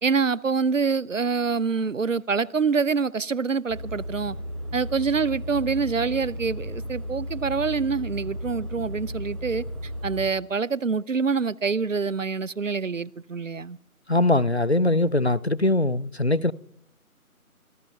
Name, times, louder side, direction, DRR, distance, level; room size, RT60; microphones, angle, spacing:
voice 1, 0.0-4.4 4.7-13.8, right 5 dB, 60° right, 0.6 m, -26 dB
sound 1, 3.7-10.3, equal, 75° right, 3.2 m, -34 dB
voice 2, 14.1-16.5, left 2 dB, 50° left, 0.4 m, -21 dB
26.0 x 17.5 x 2.3 m
figure-of-eight pair, 165°, 44 cm